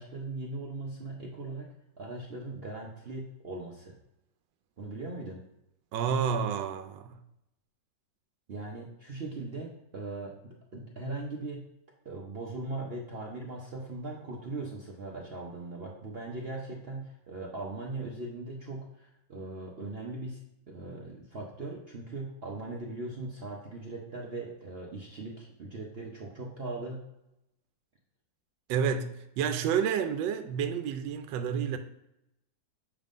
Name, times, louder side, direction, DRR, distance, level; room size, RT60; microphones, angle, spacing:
voice 1, 0.0-1.7 2.0-4.0 4.8-5.4 8.5-11.6 12.0-20.4 20.7-27.0, right 2 dB, 55° right, 0.6 m, -39 dB
voice 2, 5.9-7.2 28.7-31.8, right 7 dB, 80° right, 1.3 m, -30 dB
7.3 x 5.3 x 2.5 m
omnidirectional pair, 2.1 m